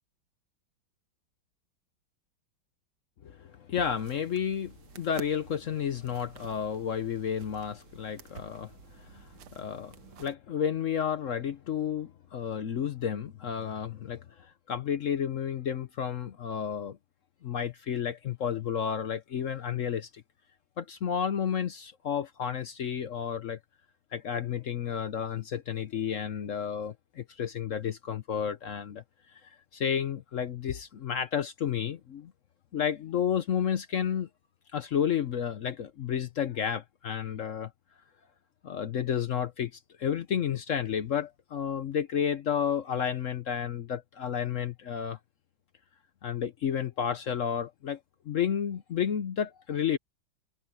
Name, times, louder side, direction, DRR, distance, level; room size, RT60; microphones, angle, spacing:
voice 1, 3.2-8.7 9.1-9.3 9.5-14.2 14.7-17.0 17.4-20.1 20.8-23.6 24.1-29.0 29.7-32.3 32.7-34.3 34.7-37.7 38.6-39.7 40.0-45.2 46.2-48.0 48.3-50.0, left 8 dB, 60° left, 0.8 m, -31 dB
sound 1, 3.7-10.4, right 9 dB, 70° right, 1.7 m, -51 dB
omnidirectional pair, 2.2 m